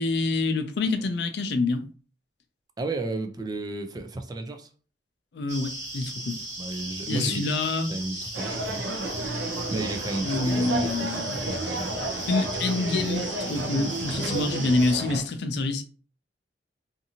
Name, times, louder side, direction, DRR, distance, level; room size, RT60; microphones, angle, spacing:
voice 1, 0.0-1.8 5.3-6.4 7.1-7.9 8.1-8.3 10.2-11.5 12.3-15.8, left 3 dB, 65° left, 0.4 m, -27 dB
voice 2, 2.8-4.7 6.6-7.5 7.9-8.9 9.7-12.1, right 2 dB, 20° right, 0.3 m, -33 dB
sound 1, 5.5-14.9, right 1 dB, 45° right, 1.1 m, -36 dB
sound 2, 8.3-15.2, right 2 dB, 85° right, 0.5 m, -32 dB
2.6 x 2.5 x 2.7 m
head